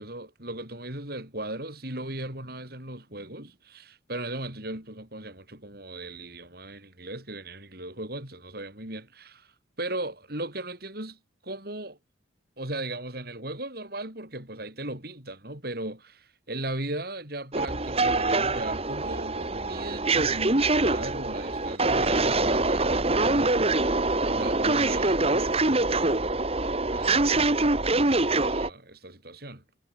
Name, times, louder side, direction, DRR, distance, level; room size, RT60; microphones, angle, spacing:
voice 1, 0.0-9.5 9.8-11.2 11.4-12.0 12.6-23.7 24.2-26.2 26.9-29.6, right 1 dB, 55° right, 7.7 m, -37 dB
sound 1, 17.5-28.7, right 2 dB, 30° right, 2.1 m, -24 dB
head